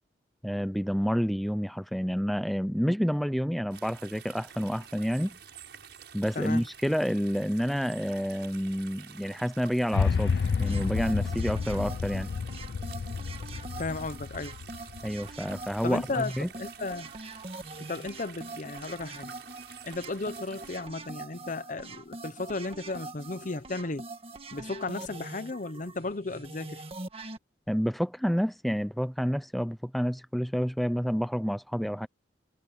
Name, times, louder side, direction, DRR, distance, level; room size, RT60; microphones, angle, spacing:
voice 1, 0.4-5.4 6.1-12.3 15.0-16.5 27.7-32.1, equal, ahead, 0.5 m, -29 dB
sound 1, 3.7-20.8, right 8 dB, 65° right, 7.2 m, -50 dB
sound 2, 9.9-16.1, left 5 dB, 60° left, 0.4 m, -30 dB
sound 3, 10.6-27.4, right 2 dB, 30° right, 1.7 m, -44 dB
voice 2, 13.8-14.6 15.8-17.1 17.8-19.3 19.8-24.1 24.5-26.8, left 3 dB, 45° left, 0.9 m, -34 dB
head